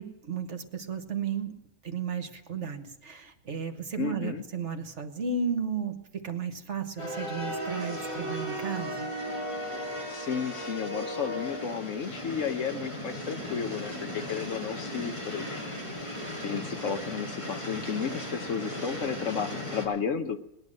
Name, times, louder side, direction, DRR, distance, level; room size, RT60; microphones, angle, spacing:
voice 1, 0.0-1.5 1.8-9.1, right 6 dB, 55° right, 7 dB, 1.5 m, -34 dB
voice 2, 4.0-4.4 10.1-15.6 16.1-20.4, left 6 dB, 60° left, 8 dB, 1.2 m, -33 dB
sound 1, 7.0-19.8, equal, 20° left, 4.9 m, -36 dB
19.5 x 10.5 x 6.5 m, 0.92 s
omnidirectional pair, 1.6 m